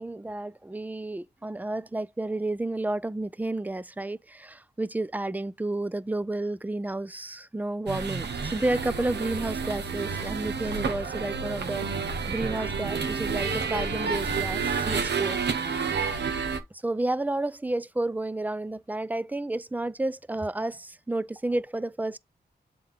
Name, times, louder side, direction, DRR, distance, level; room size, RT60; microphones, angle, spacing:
voice 1, 0.0-11.9 12.3-15.4 16.8-22.2, right 2 dB, 10° right, 0.4 m, -31 dB
sound 1, 7.9-16.6, right 5 dB, 80° right, 1.0 m, -30 dB
7.5 x 3.6 x 3.5 m
cardioid pair, 65°, 17 cm